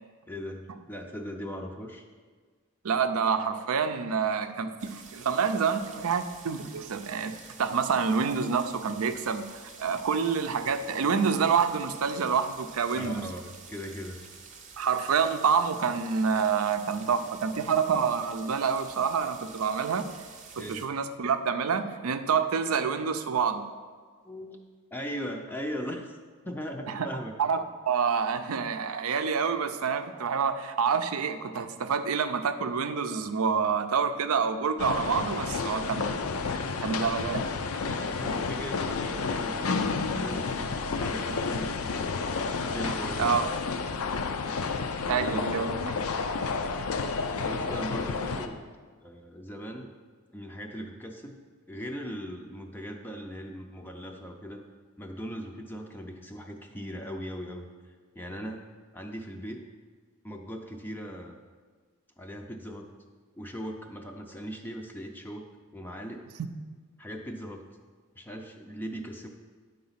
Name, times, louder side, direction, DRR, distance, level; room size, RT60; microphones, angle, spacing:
voice 1, 0.3-2.1 12.9-14.2 20.6-20.9 24.2-24.6 24.9-26.1 26.4-27.3 37.8-42.1 42.6-43.3 45.0-45.6 47.4-48.6 49.0-49.9 50.3-51.4 51.7-54.6 55.0-57.6 58.2-58.7 58.9-59.7 60.2-61.4 62.2-62.9 63.4-65.4 65.7-66.2 67.0-67.7 68.2-69.3, equal, 10° left, 2 dB, 0.5 m, -39 dB
voice 2, 2.8-7.3 7.6-13.3 14.8-20.1 20.6-23.6 26.9-27.1 27.4-36.5 36.8-37.5 43.2-43.5 45.1-45.9, right 6 dB, 75° right, 9 dB, 0.5 m, -27 dB
sound 1, 4.8-20.9, right 5 dB, 35° right, 0.7 m, -49 dB
sound 2, 34.8-48.5, left 4 dB, 75° left, 0.5 m, -31 dB
9.4 x 4.0 x 5.7 m, 1.5 s
head